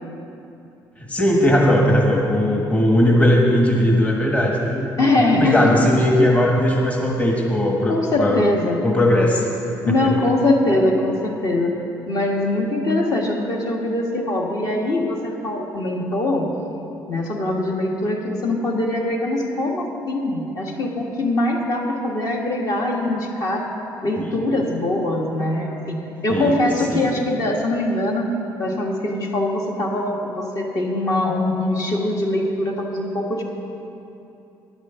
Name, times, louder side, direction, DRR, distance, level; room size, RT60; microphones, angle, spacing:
voice 1, 1.0-5.0 5.4-8.4 8.8-9.5 9.9-10.1 24.2-24.4 26.3-26.5 26.9-27.1, left 1 dB, 15° left, -1 dB, 1.3 m, -18 dB
voice 2, 5.0-5.8 7.9-8.8 9.8-11.7 12.1-16.5 17.1-23.7 24.0-26.0 26.2-28.3 28.6-33.4, left 2 dB, 50° left, 0 dB, 1.6 m, -22 dB
10.5 x 8.1 x 6.9 m, 2.8 s
cardioid pair, 120°, 8 cm